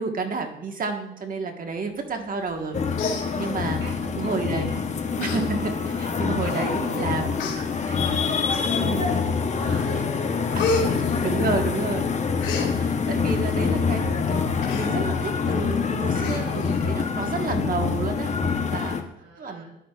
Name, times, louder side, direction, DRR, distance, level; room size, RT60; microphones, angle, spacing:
voice 1, 0.0-2.8 3.0-3.8 4.2-4.7 5.2-5.7 6.0-7.3 8.8-9.1 10.9-12.0 12.6-19.0 19.4-19.6, right 4 dB, 45° right, 4 dB, 1.4 m, -30 dB
voice 2, 2.2-2.9 3.5-6.0 6.4-7.1 7.5-11.3 13.7-14.3 19.2-19.6, right 3 dB, 65° right, -1 dB, 3.1 m, -43 dB
Human voice, 2.5-2.7 2.9-3.8 4.6-4.8 5.2-5.4 5.8-5.9 6.7-6.8 7.3-7.6 8.5-9.0 9.5-9.9 10.1-11.8 12.1-12.7 14.6-14.9 15.3-15.4 15.6-15.8 16.1-16.8 17.2-17.3, left 3 dB, 80° left, 2.2 m, -31 dB
sound 1, 2.7-19.0, left 5 dB, 35° left, 0.9 m, -25 dB
10.5 x 10.0 x 2.4 m, 0.84 s
cardioid pair, 90°, 20 cm